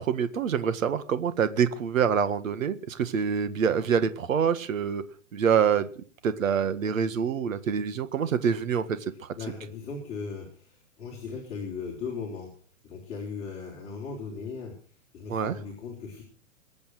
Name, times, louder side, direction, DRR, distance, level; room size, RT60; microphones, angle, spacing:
voice 1, 0.0-5.0 5.3-8.9 9.2-9.3 15.3-15.6, right 7 dB, 80° right, 12 dB, 1.8 m, -26 dB
voice 2, 9.1-12.5 12.8-16.2, left 5 dB, 15° left, -3 dB, 3.9 m, -38 dB
22.0 x 8.6 x 6.4 m, 0.42 s
hypercardioid pair, 175°, 39 cm